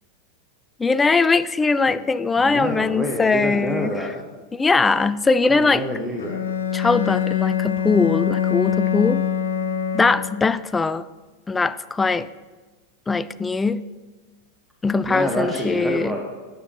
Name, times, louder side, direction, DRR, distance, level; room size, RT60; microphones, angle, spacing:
voice 1, 0.8-3.9 4.5-5.8 6.7-9.2 9.9-11.1 11.5-12.3 13.1-13.9 14.8-16.1, left 4 dB, 15° left, 15 dB, 0.3 m, -21 dB
voice 2, 2.4-4.2 5.5-6.4 15.0-16.2, equal, 5° right, -1 dB, 1.1 m, -27 dB
Bowed string instrument, 6.2-10.6, left 9 dB, 70° left, 0.5 m, -24 dB
9.9 x 7.4 x 4.5 m, 1.3 s
figure-of-eight pair, 90°, 0 cm